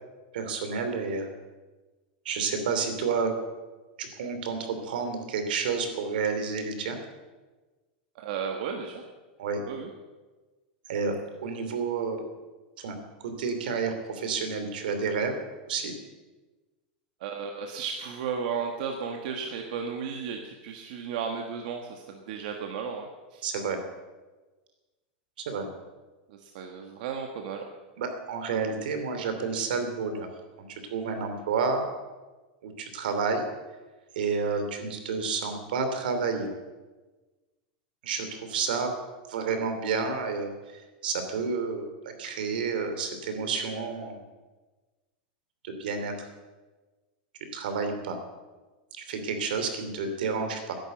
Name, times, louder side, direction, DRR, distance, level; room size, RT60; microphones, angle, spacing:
voice 1, 0.3-1.3 2.2-3.3 4.0-7.0 9.4-9.6 10.9-12.2 12.8-12.9 13.2-15.4 15.7-15.9 23.4-23.8 25.4-25.7 28.0-30.3 30.6-31.9 32.6-33.4 34.1-36.5 38.0-38.9 39.3-44.2 45.6-46.3 47.5-48.2 48.9-50.8, right 5 dB, 80° right, 7 dB, 2.9 m, -30 dB
voice 2, 8.2-9.0 9.7-9.9 17.2-23.4 26.3-27.6, right 6 dB, 60° right, 3 dB, 1.5 m, -34 dB
13.5 x 11.0 x 7.8 m, 1.2 s
supercardioid pair, 160°, 5 cm